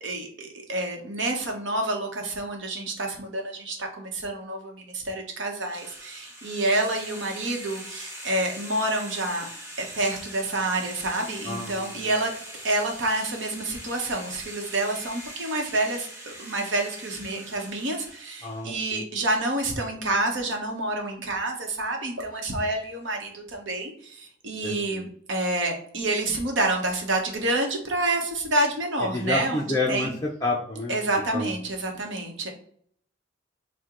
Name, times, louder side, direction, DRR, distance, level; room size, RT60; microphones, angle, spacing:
voice 1, 0.0-9.5 9.8-12.3 12.6-30.1 30.9-32.5, right 2 dB, 75° right, 2 dB, 0.9 m, -28 dB
sound 1, 5.7-18.7, right 1 dB, 15° right, 1.0 m, -42 dB
voice 2, 11.5-12.1 18.4-19.0 24.6-25.0 29.1-30.1 30.4-31.0 31.3-31.5, left 2 dB, 20° left, -3 dB, 0.4 m, -29 dB
4.4 x 2.1 x 3.7 m, 0.62 s
head